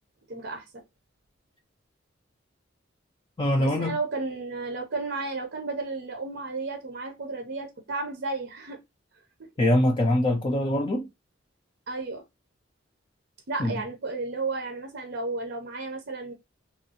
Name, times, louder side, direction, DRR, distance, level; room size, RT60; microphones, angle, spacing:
voice 1, 0.3-0.8 3.6-8.8 11.9-12.2 13.5-16.3, right 3 dB, 60° right, 0.6 m, -33 dB
voice 2, 3.4-4.0 9.6-11.1 13.6-13.8, left 1 dB, 25° left, 0.4 m, -23 dB
3.5 x 2.3 x 2.8 m
head